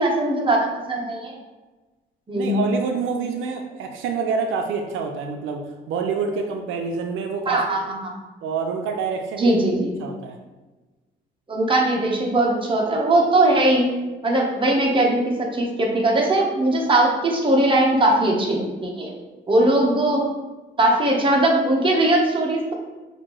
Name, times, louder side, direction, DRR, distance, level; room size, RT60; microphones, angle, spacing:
voice 1, 0.0-1.3 2.3-2.6 7.5-8.1 9.4-10.1 11.5-13.9 14.2-19.1 19.5-20.2 20.8-22.7, right 1 dB, 25° right, -1 dB, 1.0 m, -20 dB
voice 2, 2.4-7.8 8.4-9.6 10.0-10.4, right 5 dB, 85° right, 4 dB, 0.5 m, -27 dB
5.8 x 2.7 x 3.0 m, 1.2 s
cardioid pair, 90°, 20 cm